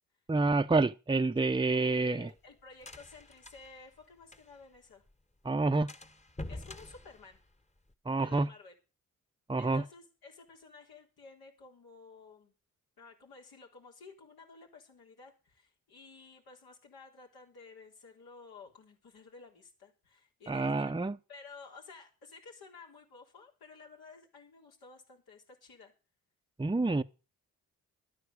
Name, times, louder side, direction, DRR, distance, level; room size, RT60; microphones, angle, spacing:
voice 1, 0.3-2.3 5.4-5.9 8.1-8.5 9.5-9.8 20.5-21.2 26.6-27.0, right 3 dB, 15° right, 0.8 m, -28 dB
sound 1, 1.4-4.8 5.1-5.2 5.5-5.6 5.9-7.9, left 1 dB, 20° left, 1.4 m, -47 dB
voice 2, 1.7-5.0 6.5-7.4 8.2-8.7 9.5-12.5 13.0-21.0 21.3-25.9, left 4 dB, 75° left, 4.0 m, -53 dB
12.0 x 9.7 x 6.6 m
supercardioid pair, 50°, 37 cm